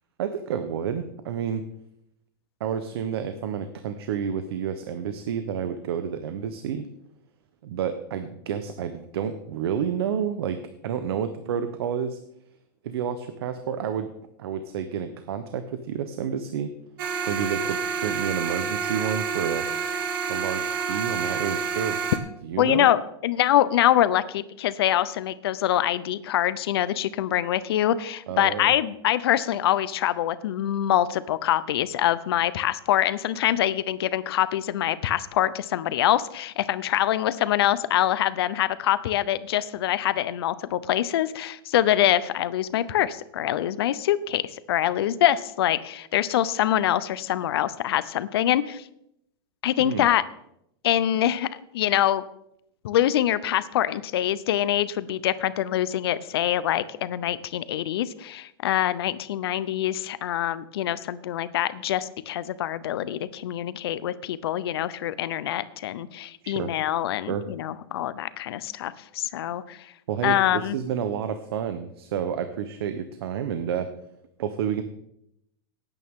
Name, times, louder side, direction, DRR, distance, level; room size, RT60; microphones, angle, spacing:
voice 1, 0.2-1.6 2.6-6.9 7.6-10.6 10.8-12.2 12.8-14.1 14.4-16.7 17.2-19.7 20.3-22.0 22.4-22.9 28.3-28.8 49.8-50.0 66.4-66.7 67.3-67.5 70.1-73.9 74.4-74.8, right 8 dB, 80° right, 9 dB, 0.9 m, -29 dB
sound 1, 17.0-22.2, right 6 dB, 60° right, 1.7 m, -28 dB
voice 2, 22.6-48.8 49.6-50.2 50.8-51.5 51.7-52.2 52.8-69.9 70.2-70.7, left 12 dB, 80° left, 16 dB, 0.7 m, -24 dB
17.0 x 9.2 x 3.7 m, 0.77 s
supercardioid pair, 175°, 13 cm